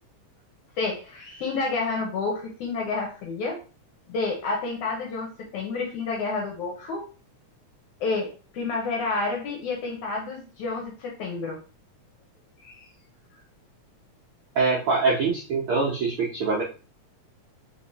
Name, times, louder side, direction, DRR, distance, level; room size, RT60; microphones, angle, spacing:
voice 1, 0.8-3.6 4.1-7.1 8.0-11.6 12.6-12.8, left 3 dB, 75° left, 0 dB, 2.2 m, -29 dB
voice 2, 14.5-16.6, right 4 dB, 85° right, -3 dB, 1.1 m, -24 dB
4.6 x 3.4 x 2.8 m, 0.35 s
omnidirectional pair, 3.6 m